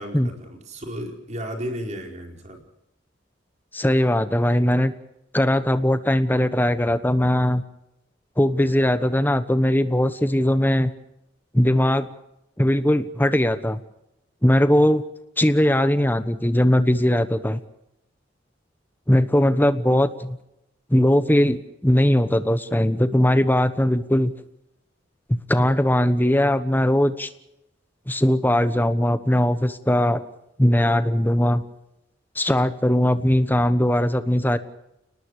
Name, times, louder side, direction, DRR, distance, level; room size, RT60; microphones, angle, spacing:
voice 1, 0.0-2.6, equal, 40° right, 2 dB, 4.5 m, -34 dB
voice 2, 3.7-4.9 5.3-7.6 8.4-10.9 11.5-12.1 12.6-13.8 14.4-15.0 15.4-17.6 19.1-20.4 20.9-24.3 25.3-27.3 28.1-30.2 30.6-31.6 32.3-34.6, left 1 dB, 10° left, 11 dB, 1.1 m, -20 dB
30.0 x 19.5 x 4.9 m, 0.84 s
head